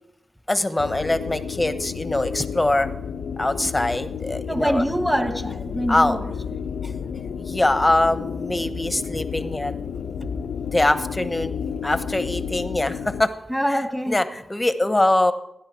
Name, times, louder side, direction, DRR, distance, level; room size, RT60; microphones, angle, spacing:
voice 1, 0.5-2.9 3.4-4.8 5.9-6.2 6.8-6.9 7.5-9.7 10.7-13.3 13.7-15.3, left 1 dB, 20° left, 11 dB, 1.1 m, -23 dB
sound 1, 0.8-13.2, left 7 dB, 85° left, 0.6 m, -31 dB
voice 2, 4.5-6.2 13.5-14.2, equal, 5° right, 6 dB, 2.1 m, -24 dB
17.0 x 10.5 x 4.7 m, 0.81 s
cardioid pair, 55°, 0 cm